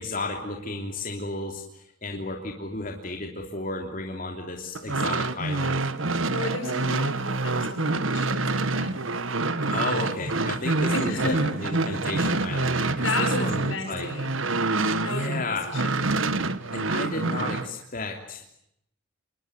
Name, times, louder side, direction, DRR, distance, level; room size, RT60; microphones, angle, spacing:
voice 1, 0.0-5.9 9.7-14.1 15.0-15.7 16.7-18.5, left 2 dB, 45° left, 2 dB, 3.1 m, -33 dB
sound 1, 4.7-15.4 15.7-17.7, right 3 dB, 80° right, 1.6 m, -26 dB
voice 2, 6.3-8.9 10.9-11.5 13.0-14.3 15.0-16.0, left 2 dB, 80° left, 6 dB, 6.9 m, -33 dB
27.5 x 21.5 x 9.6 m, 0.78 s
head